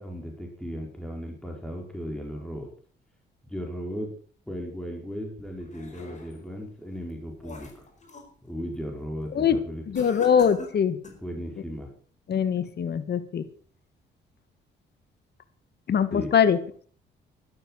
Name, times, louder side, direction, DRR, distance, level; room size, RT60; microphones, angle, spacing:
voice 1, 0.0-2.7 3.5-4.1 4.5-7.9 8.4-9.8 11.2-11.9 16.1-16.3, equal, 5° left, 1 dB, 5.1 m, -36 dB
sound 1, 5.4-6.5 7.0-8.3 8.7-9.1 9.9-11.3, left 3 dB, 35° left, 4.8 m, -43 dB
voice 2, 9.9-11.0 12.3-13.4 15.9-16.6, left 7 dB, 55° left, 13 dB, 1.8 m, -22 dB
12.5 x 12.0 x 6.4 m, 0.43 s
cardioid pair, 90°, 20 cm